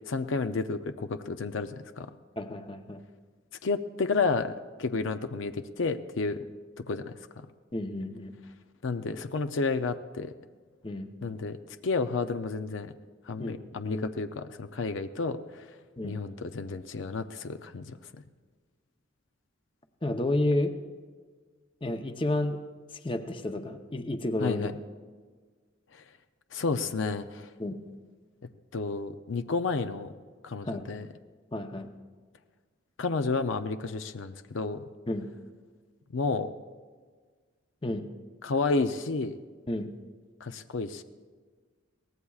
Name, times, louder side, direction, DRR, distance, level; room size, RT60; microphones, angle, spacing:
voice 1, 0.1-2.1 3.6-4.5 4.8-6.4 6.8-7.5 8.8-10.3 11.2-11.6 11.8-12.9 13.3-15.6 16.0-18.0 24.4-24.7 26.5-27.5 28.7-30.1 30.4-31.1 33.0-34.8 36.1-36.5 38.4-39.4 40.4-41.0, left 4 dB, 75° left, 9 dB, 0.5 m, -31 dB
voice 2, 2.4-3.0 7.7-8.3 10.8-11.1 13.4-13.6 13.8-14.0 16.0-16.2 20.0-20.7 21.8-22.6 22.9-24.7 27.6-27.8 30.6-30.9 31.5-31.9 35.1-35.3 37.8-38.1 39.7-39.9, left 1 dB, 25° left, 7 dB, 0.7 m, -31 dB
23.0 x 18.0 x 2.4 m, 1.5 s
head